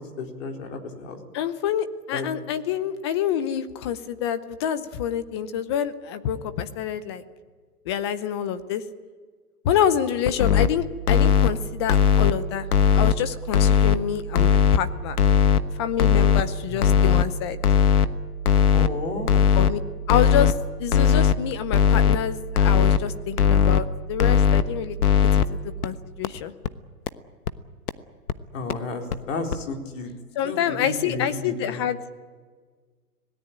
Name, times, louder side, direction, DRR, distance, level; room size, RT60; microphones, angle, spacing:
voice 1, 0.2-1.2 2.1-2.3 16.7-17.1 18.7-19.3 28.5-30.1 30.4-31.8, left 3 dB, 50° left, 2 dB, 4.4 m, -32 dB
voice 2, 1.3-7.2 7.9-8.8 9.6-12.7 12.9-15.2 15.7-17.6 19.5-19.8 20.1-20.5 20.8-25.0 25.3-26.5 30.3-32.0, left 9 dB, 20° left, 13 dB, 0.6 m, -27 dB
sound 1, 10.3-10.7 11.1-11.5 11.9-12.3 12.7-13.1 13.5-13.9 14.3-14.8 15.2-15.6 16.0-16.4 16.8-17.2 17.6-18.1 18.5-18.9 19.3-19.7 20.1-20.5 20.9-21.3 21.7-22.2 22.6-23.0 23.4-23.8 24.2-24.6 25.0-25.4 25.8-25.9 26.2-26.3 26.6-26.7 27.1-27.2 27.5-27.6 27.9-28.0 28.3-28.4 28.7-28.8 29.1-29.2 29.5-29.6, left 7 dB, 70° left, 1.3 m, -18 dB
25.5 x 18.0 x 8.8 m, 1.5 s
hypercardioid pair, 150°, 47 cm